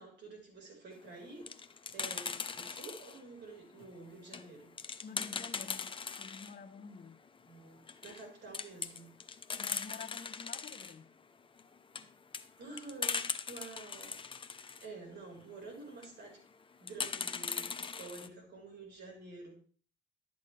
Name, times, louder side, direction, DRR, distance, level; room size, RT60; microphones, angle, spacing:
voice 1, 0.0-4.7 7.4-9.1 12.6-14.2 14.5-16.4 16.8-19.6, right 3 dB, 60° right, 4.6 m, -49 dB
sound 1, 1.2-3.2 3.7-6.5 6.9-7.0 7.3-7.4 7.8-8.3 8.5-11.0 11.6-14.9 15.8-16.2 16.9-18.3, left 5 dB, 25° left, 0.6 m, -40 dB
voice 2, 5.0-7.2 9.6-11.1, left 5 dB, 45° left, 1.0 m, -49 dB
11.5 x 8.4 x 3.3 m
cardioid pair, 90°, 20 cm